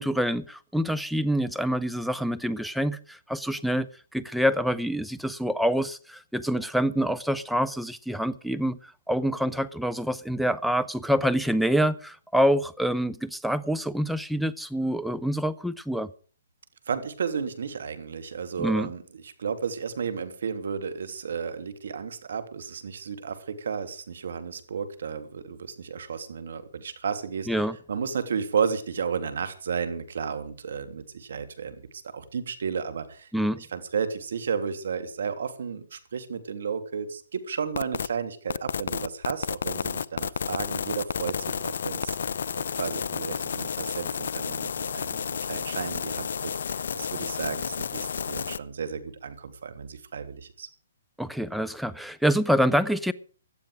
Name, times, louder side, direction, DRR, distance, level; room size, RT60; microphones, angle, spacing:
voice 1, 0.0-3.9 4.1-16.1 18.6-18.9 27.5-27.8 33.3-33.6 51.2-53.1, equal, ahead, 0.7 m, -26 dB
voice 2, 16.9-27.6 27.9-33.3 33.6-42.2 42.6-46.3 46.7-50.7, right 6 dB, 65° right, 2.9 m, -33 dB
sound 1, 37.7-38.1 38.5-48.6, left 7 dB, 65° left, 0.7 m, -31 dB
17.0 x 12.0 x 5.1 m
hypercardioid pair, 140°, 0 cm